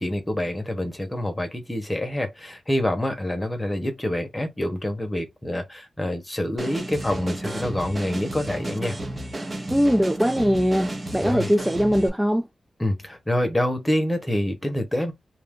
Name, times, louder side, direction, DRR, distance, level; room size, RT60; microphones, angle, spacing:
voice 1, 0.0-9.0 11.2-11.5 12.8-15.1, left 1 dB, 15° left, 1.0 m, -26 dB
sound 1, 6.6-12.1, right 1 dB, 30° right, 1.1 m, -32 dB
voice 2, 9.7-12.5, equal, 5° right, 0.3 m, -21 dB
2.8 x 2.6 x 3.6 m
wide cardioid pair, 95°, 0 cm